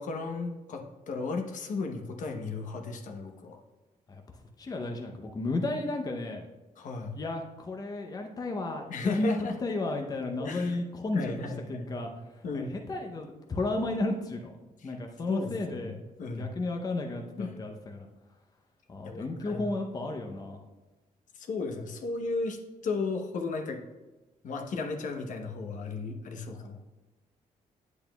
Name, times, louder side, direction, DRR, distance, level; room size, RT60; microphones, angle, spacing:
voice 1, 0.0-3.6 6.8-7.2 8.9-9.5 10.4-10.8 11.1-11.9 12.4-12.8 14.8-15.0 15.3-16.6 17.4-17.5 19.0-19.7 21.4-23.8 24.4-26.8, left 4 dB, 65° left, 3 dB, 0.9 m, -35 dB
voice 2, 4.6-6.4 7.1-14.5 14.8-18.1 18.9-20.6, left 2 dB, 25° left, 3 dB, 0.6 m, -33 dB
8.8 x 8.2 x 2.3 m, 1.1 s
cardioid pair, 125°, 14 cm